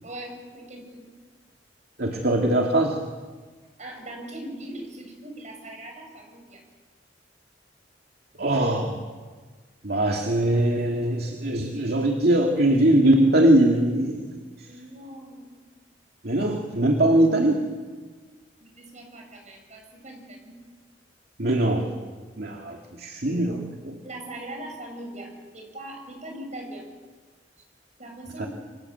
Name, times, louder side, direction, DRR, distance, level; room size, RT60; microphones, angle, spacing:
voice 1, 0.0-1.1 3.8-6.6 14.7-15.6 18.6-20.6 23.2-23.6 24.0-26.9 28.0-28.5, right 1 dB, 40° right, 2 dB, 7.7 m, -40 dB
voice 2, 2.0-3.0 8.4-9.0 9.8-14.7 16.2-17.6 21.4-21.9 22.4-23.6 23.9-24.0 28.4-28.5, right 1 dB, 55° right, 2 dB, 2.4 m, -21 dB
28.0 x 25.5 x 8.1 m, 1.4 s
head